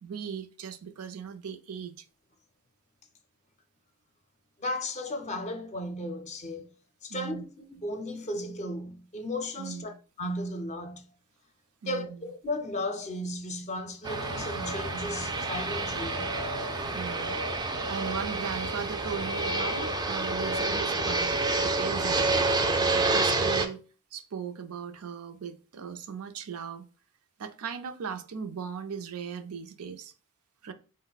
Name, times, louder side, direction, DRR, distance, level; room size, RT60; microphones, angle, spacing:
voice 1, 0.0-2.1 7.1-7.4 9.6-9.9 11.8-12.3 16.9-17.4 17.9-22.4 22.9-23.8 24.1-26.9 27.4-30.1 30.6-30.7, right 7 dB, 75° right, 0.5 m, -38 dB
voice 2, 4.6-6.7 7.0-11.0 11.9-16.3, left 1 dB, 30° left, 0.6 m, -35 dB
Fixed-wing aircraft airplane, 14.0-23.7, right 2 dB, 20° right, 0.4 m, -28 dB
4.6 x 2.1 x 4.0 m
head